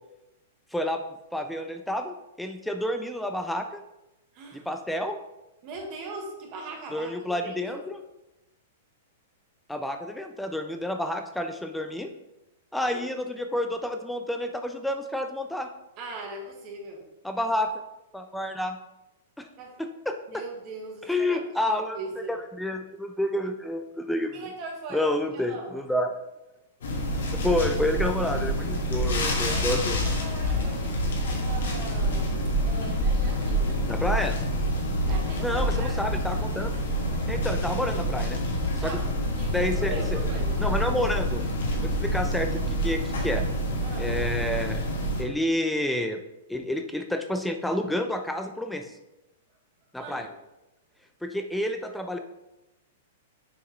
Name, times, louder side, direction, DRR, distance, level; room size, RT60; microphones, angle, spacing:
voice 1, 0.7-1.0 1.3-3.8 4.5-5.2 6.9-8.0 9.7-12.1 12.7-15.7 17.2-17.8 18.1-18.8 19.4-19.5 19.8-20.4 21.1-22.0 22.3-24.3 24.9-26.1 27.3-30.0 33.9-34.4 35.4-36.8 37.3-38.4 38.8-38.9 39.5-40.2 40.6-41.4 41.8-43.4 44.0-44.8 45.2-46.2 46.5-48.9 49.9-50.3 51.2-52.2, left 1 dB, 5° left, 6 dB, 0.4 m, -29 dB
voice 2, 4.3-4.7 5.6-7.8 12.8-13.0 16.0-17.0 19.6-19.8 20.3-21.6 21.9-22.4 24.3-25.7 29.4-32.4 32.6-33.9 35.0-36.0 38.8-39.0 39.3-40.6 43.8-44.1 50.0-50.3, right 3 dB, 40° right, 0 dB, 1.7 m, -40 dB
sound 1, 26.8-45.2, equal, 85° left, 1.6 m, -27 dB
6.8 x 4.7 x 3.1 m, 0.93 s
hypercardioid pair, 140°, 0 cm